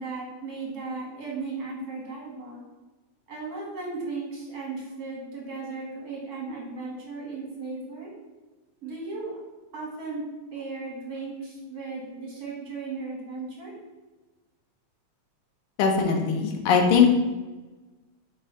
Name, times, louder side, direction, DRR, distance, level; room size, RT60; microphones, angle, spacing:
voice 1, 0.0-2.6 3.3-8.1 8.8-9.3 9.7-10.2 10.5-13.7, right 3 dB, 35° right, -3 dB, 2.2 m, -36 dB
voice 2, 15.8-17.2, left 6 dB, 65° left, 2 dB, 1.5 m, -20 dB
5.2 x 4.7 x 5.6 m, 1.2 s
omnidirectional pair, 3.5 m